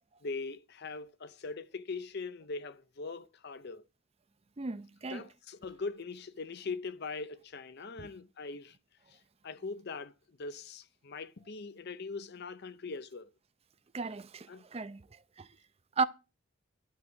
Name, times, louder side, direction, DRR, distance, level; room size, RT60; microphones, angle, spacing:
voice 1, 0.2-3.8 5.1-8.8 9.4-10.1 10.4-13.3 14.5-14.6, left 4 dB, 50° left, 0.6 m, -41 dB
voice 2, 4.6-5.3 8.0-8.1 13.9-15.0 15.4-15.5 16.0-16.1, right 4 dB, 30° right, 0.5 m, -35 dB
11.5 x 4.7 x 7.8 m
head